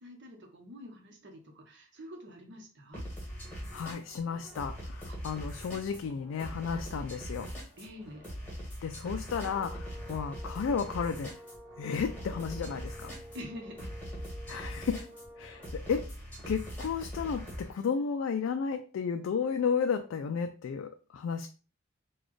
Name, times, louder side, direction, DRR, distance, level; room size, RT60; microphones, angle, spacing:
voice 1, 0.0-3.0 5.1-5.2 7.8-8.2 13.3-13.9, left 1 dB, 60° right, 2 dB, 0.9 m, -47 dB
sound 1, 2.9-17.7, equal, 10° left, 1.4 m, -42 dB
voice 2, 3.7-7.5 8.8-11.3 11.8-13.1 14.5-15.1 15.4-16.1 16.5-21.5, left 6 dB, 80° left, 6 dB, 0.3 m, -33 dB
sound 2, 9.2-15.8, equal, 30° right, 0.9 m, -50 dB
4.0 x 2.3 x 3.1 m, 0.36 s
head